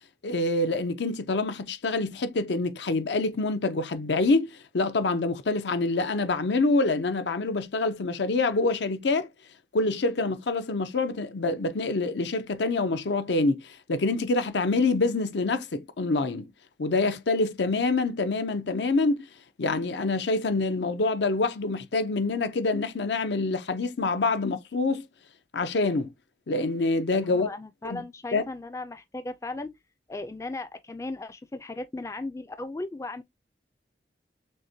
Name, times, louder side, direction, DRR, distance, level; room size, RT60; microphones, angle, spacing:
voice 1, 0.2-9.3 9.7-16.5 16.8-19.2 19.6-25.1 25.5-26.1 26.5-27.5 27.8-28.0 28.3-28.4, left 3 dB, 80° left, 0.6 m, -26 dB
voice 2, 27.3-29.7 30.1-33.2, left 2 dB, 15° left, 0.3 m, -36 dB
6.4 x 2.1 x 2.7 m
head